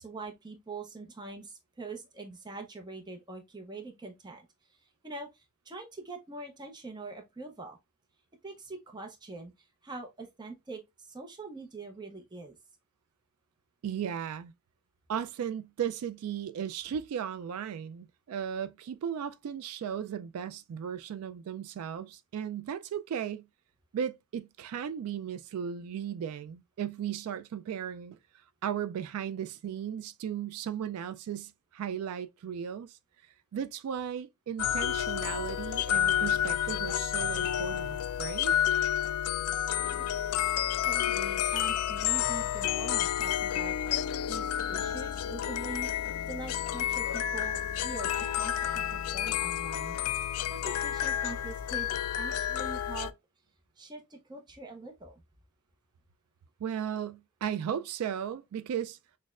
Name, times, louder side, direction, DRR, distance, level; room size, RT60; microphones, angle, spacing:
voice 1, 0.0-4.8 5.0-7.8 8.4-12.6 39.8-40.1 40.8-45.9 46.3-50.0 50.5-51.9 52.2-53.1 53.8-55.2, right 3 dB, 20° right, 0.6 m, -44 dB
voice 2, 13.8-14.5 15.1-23.5 23.9-28.2 28.6-33.0 33.5-38.5 56.6-59.0, right 8 dB, 75° right, 0.3 m, -36 dB
sound 1, 34.6-53.1, left 10 dB, 80° left, 0.3 m, -30 dB
6.2 x 2.1 x 2.3 m
head